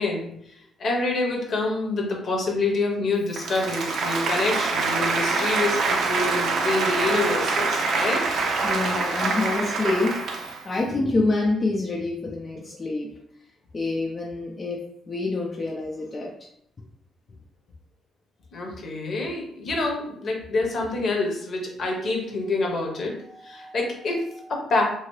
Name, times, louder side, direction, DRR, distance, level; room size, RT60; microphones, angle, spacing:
voice 1, 0.0-8.3 18.5-24.8, left 3 dB, 55° left, 0 dB, 0.9 m, -27 dB
Applause, 3.3-10.7, right 3 dB, 70° right, 0.5 m, -25 dB
voice 2, 8.6-10.2 10.6-13.1 13.7-14.8 15.1-16.3, left 2 dB, 30° left, -3 dB, 0.5 m, -26 dB
2.8 x 2.7 x 3.1 m, 0.72 s
cardioid pair, 90°, 0 cm